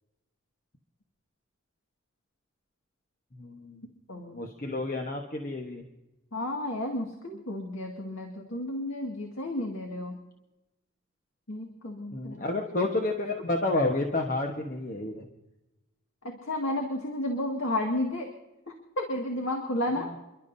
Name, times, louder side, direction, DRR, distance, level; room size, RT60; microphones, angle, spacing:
voice 1, 3.3-3.9 4.3-5.8 12.1-15.3 20.0-20.2, left 2 dB, 40° left, 2 dB, 1.2 m, -30 dB
voice 2, 6.3-10.2 11.5-12.4 16.2-18.3 19.0-20.1, left 1 dB, 85° left, 1 dB, 2.1 m, -32 dB
29.0 x 12.0 x 2.7 m, 0.96 s
head